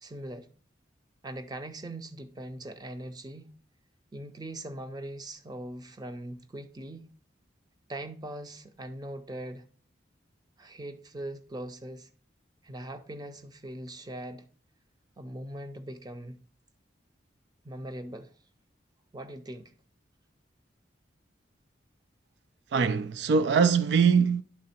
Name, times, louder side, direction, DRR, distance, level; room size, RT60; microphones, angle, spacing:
voice 1, 0.0-0.5 1.2-3.5 4.1-7.1 7.9-9.7 10.6-12.1 12.6-14.5 15.2-16.4 17.6-18.3 19.1-19.7, right 1 dB, 20° right, 0.6 m, -41 dB
voice 2, 22.7-24.4, right 6 dB, 65° right, 0.3 m, -22 dB
11.0 x 3.7 x 4.2 m
head